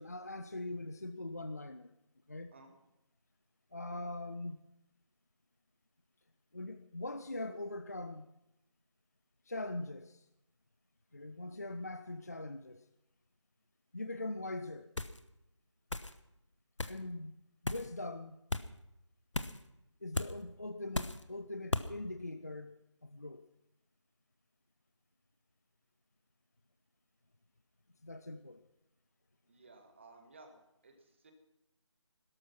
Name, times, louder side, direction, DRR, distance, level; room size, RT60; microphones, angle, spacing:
voice 1, 0.0-1.9 2.3-2.5 3.7-4.6 6.5-8.3 9.5-10.3 11.1-12.9 13.9-14.9 16.9-17.3 17.6-18.4 20.0-22.8 23.0-23.5 28.0-28.6, left 2 dB, 30° left, 0.5 m, -42 dB
sound 1, 15.0-15.2 15.9-16.1 16.8-17.0 17.6-17.9 18.5-18.7 19.3-19.6 20.1-20.3 20.9-21.2 21.7-21.9, left 2 dB, 70° left, 1.1 m, -35 dB
voice 2, 29.5-31.3, right 3 dB, 25° right, 1.7 m, -58 dB
16.5 x 13.0 x 5.9 m
figure-of-eight pair, 165°, 16 cm